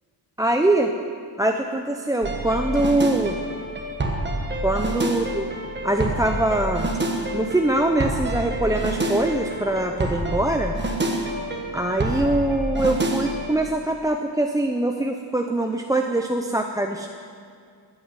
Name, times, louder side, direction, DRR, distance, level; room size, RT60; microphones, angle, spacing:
voice 1, 0.4-0.9 1.4-3.4 4.6-5.5 5.8-6.9 7.3-10.7 11.7-17.1, right 1 dB, 10° right, 3 dB, 0.5 m, -23 dB
sound 1, 2.2-13.5, right 1 dB, 25° right, 1.4 m, -27 dB
14.0 x 9.6 x 9.6 m, 2.2 s
wide cardioid pair, 180°, 43 cm